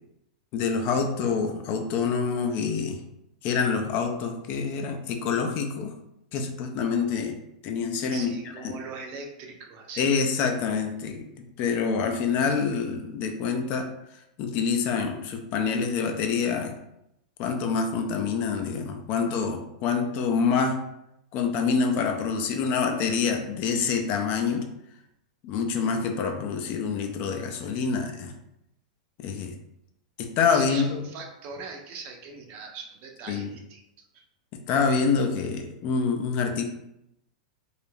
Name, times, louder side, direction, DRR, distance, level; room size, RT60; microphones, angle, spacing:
voice 1, 0.5-3.0 3.4-5.9 6.3-7.4 7.6-8.3 10.0-13.9 14.4-16.8 17.4-20.8 21.3-24.7 25.4-28.3 29.2-29.5 30.2-31.0 33.3-33.5 34.7-36.6, left 5 dB, 40° left, 4 dB, 0.4 m, -26 dB
voice 2, 8.1-10.1 30.5-34.2, right 4 dB, 40° right, 2 dB, 0.5 m, -41 dB
2.3 x 2.0 x 3.1 m, 0.83 s
hypercardioid pair, 125°, 4 cm